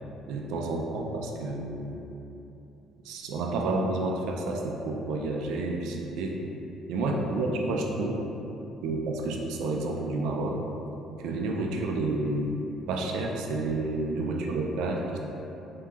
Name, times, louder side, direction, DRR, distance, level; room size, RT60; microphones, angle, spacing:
voice 1, 0.3-2.0 3.0-6.4 6.9-8.2 8.8-10.6 11.2-12.5 12.9-15.2, right 2 dB, 85° right, 0 dB, 0.5 m, -30 dB
7.1 x 2.8 x 2.4 m, 3.0 s
cardioid pair, 135°, 0 cm